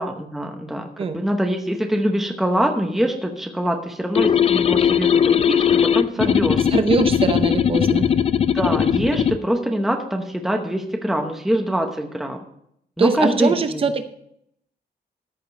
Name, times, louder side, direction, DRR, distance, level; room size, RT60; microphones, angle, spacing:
voice 1, 0.0-6.7 8.5-12.4 13.0-13.8, equal, ahead, 3 dB, 0.9 m, -24 dB
sound 1, 4.2-9.4, left 8 dB, 35° left, 0.4 m, -19 dB
voice 2, 6.7-8.1 13.0-14.0, right 4 dB, 35° right, 9 dB, 0.7 m, -22 dB
14.0 x 5.1 x 6.4 m, 0.72 s
wide cardioid pair, 180°, 17 cm